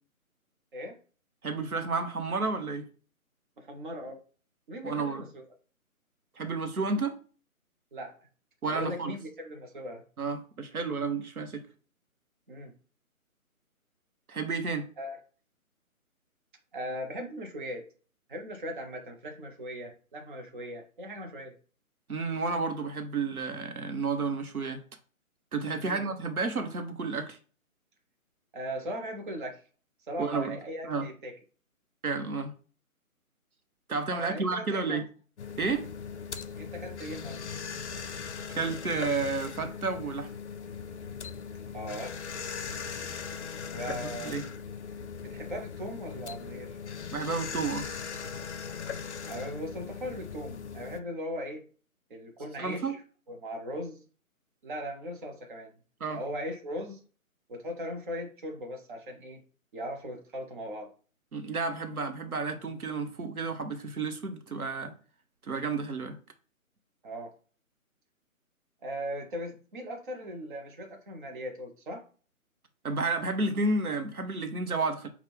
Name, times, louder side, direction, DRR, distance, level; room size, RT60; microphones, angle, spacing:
voice 1, 1.4-2.9 4.8-5.3 6.4-7.2 8.6-9.1 10.2-11.7 14.3-14.9 22.1-24.8 25.5-27.4 30.2-30.6 30.9-31.1 32.0-32.6 33.9-35.1 35.6-35.9 38.5-40.3 43.9-44.5 47.1-47.9 52.6-53.0 56.0-56.2 61.3-64.9 65.4-66.2 72.8-75.1, right 4 dB, 85° right, 0.9 m, -31 dB
voice 2, 3.6-4.2 4.7-5.4 7.9-8.1 8.7-10.0 12.5-12.7 15.0-15.2 16.7-17.9 18.3-21.6 25.8-26.0 28.5-29.6 30.1-31.4 34.1-35.0 36.6-37.4 41.7-42.2 43.7-44.4 45.2-46.8 49.3-51.6 52.1-53.0 53.3-54.0 54.6-55.7 56.1-57.0 57.5-59.4 59.7-60.9 67.0-67.3 68.8-72.0, equal, 35° right, 0.8 m, -38 dB
sound 1, 35.4-51.0, left 6 dB, 55° left, 0.6 m, -39 dB
5.8 x 2.4 x 3.5 m
figure-of-eight pair, 150°, 43 cm